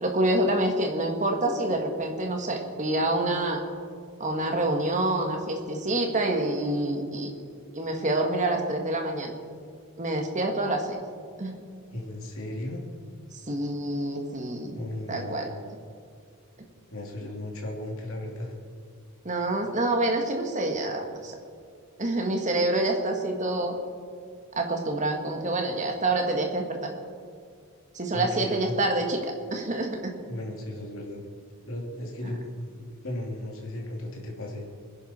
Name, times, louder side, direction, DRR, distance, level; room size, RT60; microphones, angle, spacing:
voice 1, 0.0-3.6 4.2-7.3 7.7-9.3 10.0-11.0 11.4-11.6 13.5-14.8 15.1-15.5 19.3-21.4 22.0-23.8 24.6-26.8 27.9-30.2, right 2 dB, 35° right, 3 dB, 1.8 m, -27 dB
voice 2, 11.9-12.8 14.7-15.5 16.9-18.5 19.4-19.6 28.1-28.6 30.3-31.2 31.6-34.7, left 1 dB, 60° left, -1 dB, 2.8 m, -36 dB
23.5 x 10.5 x 4.4 m, 2.3 s
head